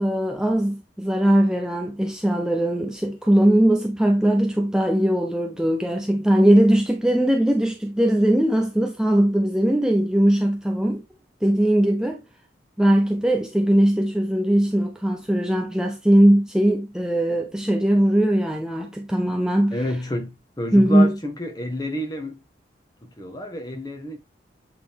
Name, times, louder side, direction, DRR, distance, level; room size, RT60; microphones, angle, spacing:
voice 1, 0.0-11.0 11.4-12.2 12.8-19.8 20.7-21.1, right 1 dB, 5° right, 0.5 m, -20 dB
voice 2, 19.7-22.4 23.0-24.2, equal, 20° left, 1.4 m, -29 dB
8.1 x 3.8 x 3.6 m
head